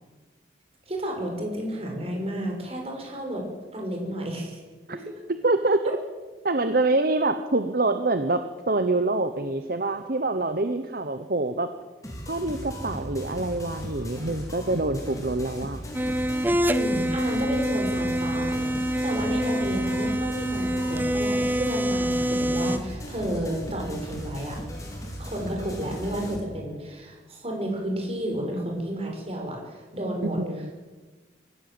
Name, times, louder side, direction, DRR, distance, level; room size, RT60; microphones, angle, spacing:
voice 1, 0.9-3.5 3.7-4.6 4.9-5.0 16.7-24.6 25.2-30.4, right 1 dB, 35° right, 1 dB, 5.9 m, -31 dB
voice 2, 5.3-5.8 6.4-11.7 12.3-15.8 30.2-30.7, right 2 dB, 50° right, 9 dB, 1.0 m, -25 dB
sound 1, 12.0-26.4, equal, 20° left, 4.4 m, -37 dB
sound 2, 15.9-22.8, equal, 10° right, 0.6 m, -26 dB
24.0 x 15.5 x 7.8 m, 1.3 s
head